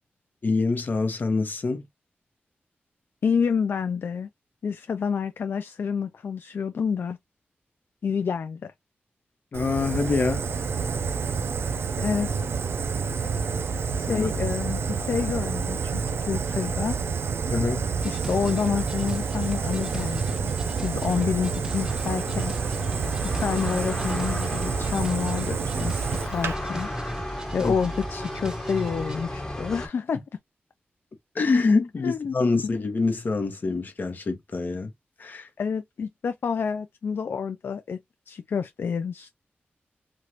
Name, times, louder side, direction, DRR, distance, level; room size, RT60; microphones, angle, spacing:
voice 1, 0.4-1.9 9.5-10.4 14.1-14.3 17.5-17.8 27.6-27.7 31.3-34.9 35.2-35.5, left 3 dB, 50° left, 1.0 m, -25 dB
voice 2, 3.2-4.3 4.6-7.2 8.0-8.7 12.0-12.3 14.0-17.0 18.0-22.5 23.3-26.9 27.5-30.2 32.0-32.3 35.6-38.0 38.3-39.3, left 6 dB, 65° left, 0.3 m, -28 dB
Fire, 9.5-26.5, right 5 dB, 85° right, 0.4 m, -28 dB
sound 1, 18.0-29.2, right 1 dB, 20° right, 0.4 m, -40 dB
sound 2, 21.7-29.9, left 1 dB, 15° left, 1.2 m, -35 dB
3.2 x 2.5 x 2.8 m
wide cardioid pair, 115°, 4 cm